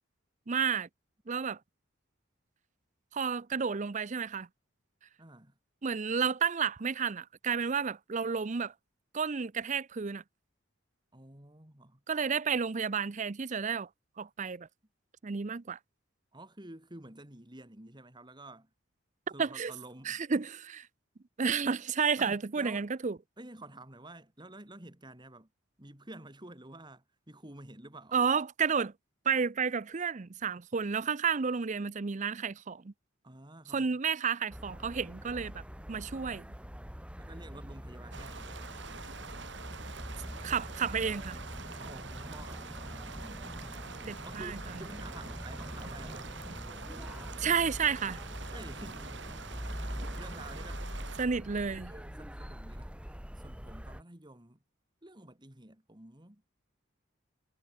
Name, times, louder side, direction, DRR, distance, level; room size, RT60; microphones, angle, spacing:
voice 1, 0.5-0.9 1.3-1.6 3.1-4.5 5.8-8.7 9.1-10.2 12.1-13.9 14.2-14.7 15.2-15.8 19.4-19.7 20.1-20.9 21.4-23.1 28.1-28.9 29.2-32.9 33.7-35.6 35.9-36.4 40.4-41.4 44.3-44.6 47.4-48.2 51.2-51.9, right 6 dB, 35° right, 0.5 m, -31 dB
voice 2, 5.2-5.6 11.1-12.0 16.3-18.7 19.3-20.2 22.2-22.9 23.4-25.5 25.8-28.2 33.2-34.0 37.2-38.5 41.8-42.7 44.0-46.3 48.5-49.2 49.8-50.8 51.9-54.6 55.0-56.4, right 1 dB, 20° right, 2.6 m, -50 dB
sound 1, 34.5-54.0, equal, 5° right, 2.0 m, -43 dB
sound 2, 38.1-51.3, right 4 dB, 60° right, 5.6 m, -46 dB
head